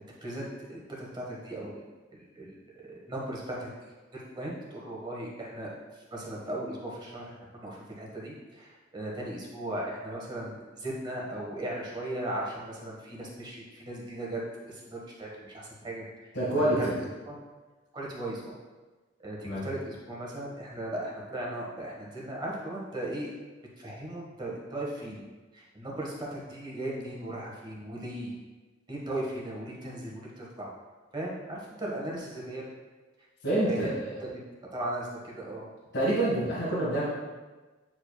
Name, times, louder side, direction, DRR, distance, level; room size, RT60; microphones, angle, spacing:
voice 1, 0.2-1.8 2.1-16.0 16.6-16.9 17.2-17.4 17.9-18.6 19.2-23.3 23.8-25.2 25.5-28.3 28.9-30.7 31.1-32.7 33.7-33.9 34.2-34.4 34.7-35.6, right 1 dB, 25° right, -3 dB, 1.2 m, -37 dB
voice 2, 16.3-16.9 19.4-19.6 33.4-34.2 35.9-37.0, right 1 dB, 60° left, -8 dB, 1.5 m, -27 dB
8.6 x 4.9 x 2.2 m, 1.3 s
head